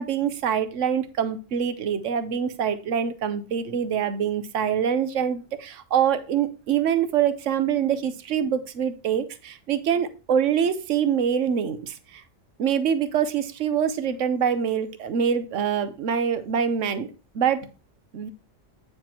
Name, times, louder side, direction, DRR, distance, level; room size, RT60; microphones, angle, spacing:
voice 1, 0.0-12.2 12.6-17.1 17.3-17.6 18.1-18.3, right 8 dB, 75° right, 11 dB, 1.2 m, -25 dB
8.9 x 5.1 x 4.3 m, 0.32 s
omnidirectional pair, 1.3 m